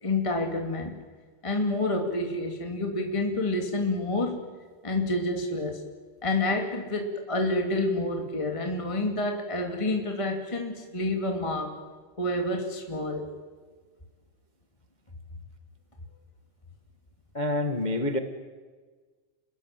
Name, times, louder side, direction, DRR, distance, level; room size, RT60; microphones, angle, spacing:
voice 1, 0.0-1.0 1.4-4.5 4.8-5.8 6.2-11.8 12.2-13.3, left 2 dB, 10° left, 3 dB, 2.1 m, -28 dB
voice 2, 17.3-18.2, left 1 dB, 45° left, 7 dB, 0.5 m, -27 dB
29.0 x 21.0 x 9.0 m, 1.4 s
omnidirectional pair, 3.7 m